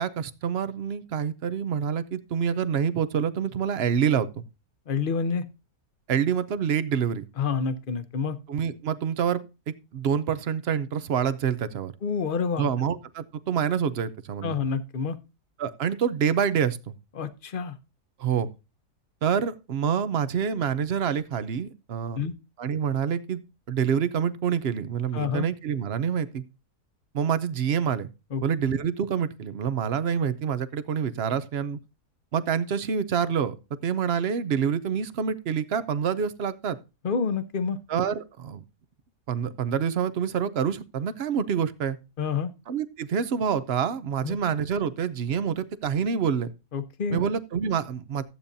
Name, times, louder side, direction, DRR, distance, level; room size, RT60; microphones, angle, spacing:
voice 1, 0.0-4.4 6.1-7.2 8.5-9.4 9.7-11.9 12.6-14.6 15.6-16.9 18.2-18.5 19.2-22.2 22.6-23.4 23.7-26.4 27.1-28.1 28.4-31.8 32.3-33.5 33.8-36.8 37.9-38.6 39.3-42.0 42.7-46.5 47.1-48.2, right 7 dB, 55° right, 0.7 m, -27 dB
voice 2, 4.9-5.5 7.4-8.4 12.0-12.7 14.4-15.2 17.2-17.8 22.1-22.3 25.1-25.5 28.3-28.4 37.0-37.8 42.2-42.5 44.2-44.4 46.7-47.2, left 5 dB, 40° left, 0.8 m, -28 dB
14.0 x 8.6 x 2.7 m
omnidirectional pair, 1.7 m